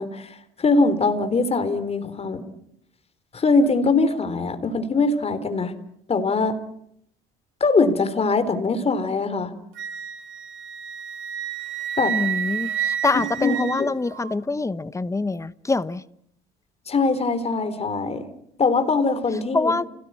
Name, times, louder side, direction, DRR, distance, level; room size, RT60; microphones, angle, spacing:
voice 1, 0.0-2.4 3.3-5.7 6.1-6.5 7.6-9.5 12.0-12.1 13.1-13.9 16.9-18.2 18.6-19.8, left 3 dB, 30° left, 3.9 m, -22 dB
Wind instrument woodwind instrument, 9.7-14.3, right 9 dB, 65° right, 5.2 m, -30 dB
voice 2, 12.1-16.0 19.5-19.8, left 3 dB, 15° left, 1.0 m, -25 dB
29.0 x 18.0 x 9.7 m
cardioid pair, 100°, 21 cm